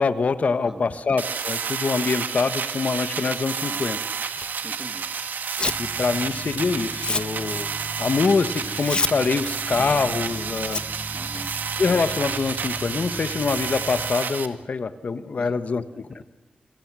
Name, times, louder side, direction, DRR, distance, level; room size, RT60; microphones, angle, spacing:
voice 1, 0.0-4.0 5.8-7.7 8.0-10.8 11.8-16.2, left 4 dB, 50° left, 12 dB, 1.3 m, -25 dB
sound 1, 1.2-14.5, right 6 dB, 80° right, 2.0 m, -30 dB
voice 2, 3.6-4.0 4.6-5.1 11.1-11.5 15.3-15.5 15.9-16.2, right 2 dB, 20° right, 9 dB, 1.8 m, -42 dB
Tearing, 4.3-5.9 6.2-12.8, left 3 dB, 35° left, 0.9 m, -32 dB
sound 2, 5.6-14.2, right 1 dB, ahead, 6.5 m, -39 dB
28.0 x 25.5 x 6.3 m, 1.0 s
wide cardioid pair, 140°, 3 cm